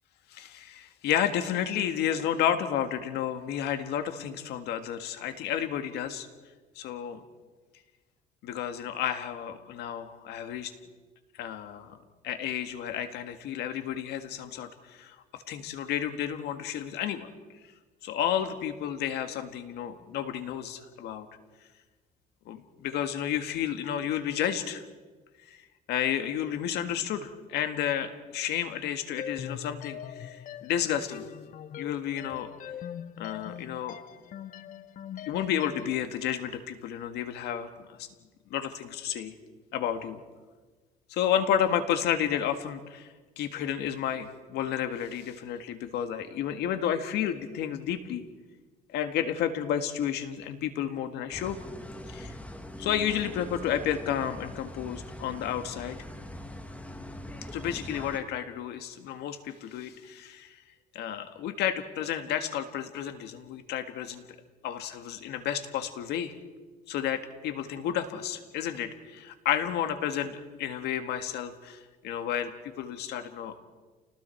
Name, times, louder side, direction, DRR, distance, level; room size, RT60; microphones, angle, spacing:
voice 1, 0.3-6.3 6.8-7.2 8.4-10.7 11.4-17.3 18.0-21.3 22.5-24.8 25.5-25.6 25.9-31.2 31.8-32.5 33.2-34.0 35.3-38.1 38.5-39.3 39.7-40.2 41.1-43.1 43.4-48.2 48.9-51.6 52.1-52.3 52.8-56.0 57.5-60.5 61.0-64.2 64.6-66.3 66.9-73.5, left 9 dB, 80° left, 8 dB, 1.8 m, -31 dB
sound 1, 29.2-36.0, left 9 dB, 50° left, 0.8 m, -42 dB
sound 2, 51.3-58.2, left 1 dB, 10° left, 1.7 m, -42 dB
29.0 x 19.5 x 4.6 m, 1.3 s
cardioid pair, 110°, 17 cm